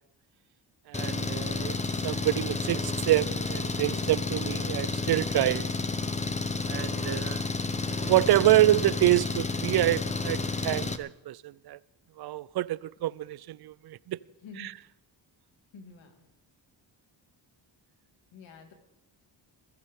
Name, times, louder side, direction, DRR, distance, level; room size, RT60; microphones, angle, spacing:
Engine, 0.9-11.0, left 3 dB, 15° left, 0.8 m, -31 dB
voice 1, 0.9-1.8 2.0-5.7 6.7-7.4 7.9-11.8 12.2-14.2 14.6-14.7, right 14 dB, 60° right, 0.5 m, -27 dB
voice 2, 15.7-16.3 18.3-18.7, left 4 dB, 85° left, 2.3 m, -48 dB
21.0 x 15.0 x 3.6 m
cardioid pair, 100°, 44 cm